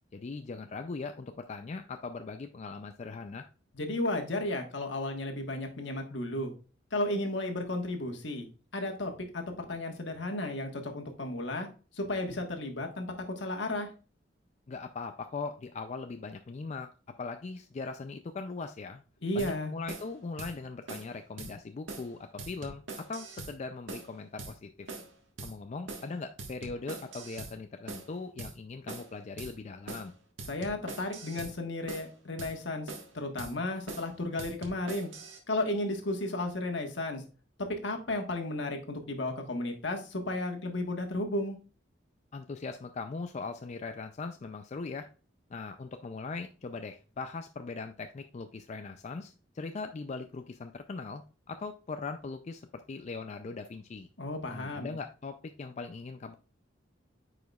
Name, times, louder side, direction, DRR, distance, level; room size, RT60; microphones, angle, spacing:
voice 1, 0.1-3.4 14.7-16.9 17.2-19.0 19.3-24.9 25.4-30.1 42.3-45.1 45.5-51.2 51.5-54.1 54.5-56.3, left 4 dB, 40° left, 7 dB, 0.4 m, -40 dB
voice 2, 3.7-6.5 6.9-8.5 8.7-11.7 11.9-13.1 13.4-13.9 19.2-19.7 30.5-35.1 35.5-37.2 37.7-41.6 54.2-54.9, left 1 dB, 70° left, 3 dB, 1.4 m, -33 dB
sound 1, 19.4-19.5 19.9-20.1 20.4-20.5 20.9-21.1 21.4-21.5 21.9-22.1 22.4-23.5 23.9-24.1 24.4-24.5 24.9-25.1 25.4-25.5 25.9-26.1 26.4-27.5 27.9-28.1 28.4-28.5 28.9-29.1 29.4-29.5 29.9-30.1 30.4-31.5 31.9-32.1 32.4-32.5 32.9-33.1 33.4-33.5 33.9-34.1 34.4-35.4, right 3 dB, 90° right, 1.5 m, -42 dB
9.2 x 4.9 x 2.3 m, 0.36 s
head